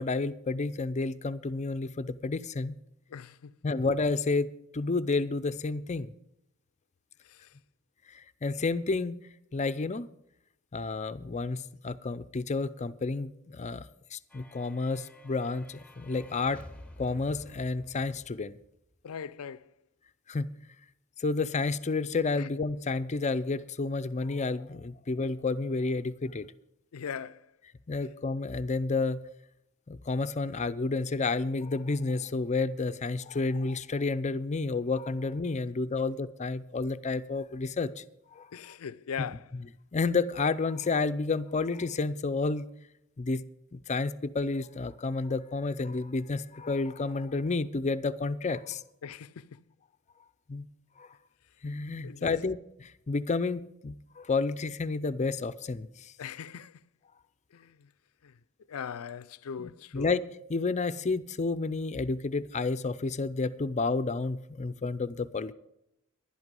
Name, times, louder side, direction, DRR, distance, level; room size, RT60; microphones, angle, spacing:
voice 1, 0.0-2.8 3.6-4.5 4.7-6.1 8.1-9.2 9.5-10.1 10.7-16.6 17.0-18.6 20.3-20.5 21.2-26.5 27.9-29.2 29.9-38.0 38.3-38.5 39.9-42.7 43.2-43.4 43.7-48.8 50.5-50.7 51.0-51.1 51.6-56.1 59.6-60.2 60.5-65.5, left 3 dB, 35° left, 0.5 m, -30 dB
voice 2, 3.1-3.6 7.2-7.5 19.0-19.7 22.4-22.5 26.9-27.5 38.5-39.5 49.0-49.6 52.0-52.4 56.2-56.8 57.5-57.9 58.2-58.4 58.7-60.1, left 7 dB, 90° left, 0.4 m, -40 dB
sound 1, 14.3-19.0, left 1 dB, 5° left, 0.8 m, -51 dB
11.5 x 11.0 x 5.3 m
head